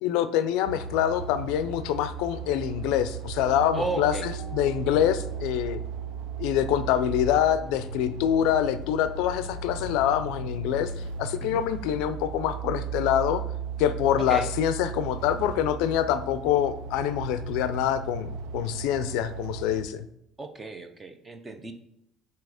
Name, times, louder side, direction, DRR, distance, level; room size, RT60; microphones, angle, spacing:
voice 1, 0.0-5.8 6.4-10.9 11.2-13.4 13.8-20.0, left 10 dB, 70° left, 12 dB, 0.4 m, -25 dB
sound 1, 0.7-19.8, right 6 dB, 75° right, 0.5 m, -36 dB
sound 2, 3.3-8.1, left 1 dB, 60° right, 2.4 m, -46 dB
voice 2, 3.7-4.3 11.4-11.6 14.3-14.5 20.4-21.7, right 2 dB, 15° right, 7 dB, 0.5 m, -34 dB
7.5 x 2.9 x 4.9 m, 0.78 s
cardioid pair, 175°, 0 cm